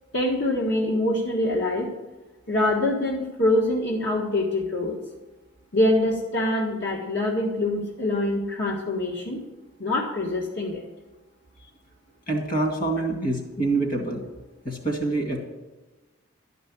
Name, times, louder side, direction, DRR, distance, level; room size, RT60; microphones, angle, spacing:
voice 1, 0.1-1.9 2.5-5.0 5.7-9.4 9.8-10.8, left 1 dB, 65° left, -3 dB, 1.5 m, -24 dB
voice 2, 12.3-14.2 14.6-15.4, right 2 dB, 45° left, 3 dB, 2.1 m, -26 dB
12.0 x 5.4 x 8.8 m, 1.2 s
head